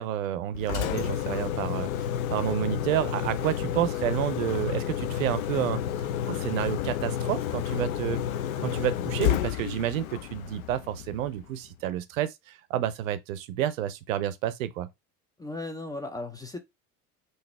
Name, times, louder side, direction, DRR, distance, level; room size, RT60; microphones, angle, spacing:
voice 1, 0.0-1.9 2.3-8.2 8.6-14.9, right 11 dB, 60° right, 0.6 m, -30 dB
Engine, 0.5-11.5, left 10 dB, 65° left, 0.5 m, -30 dB
voice 2, 15.4-16.6, left 2 dB, 10° left, 0.5 m, -36 dB
3.9 x 2.7 x 4.2 m
figure-of-eight pair, 70°, 45 cm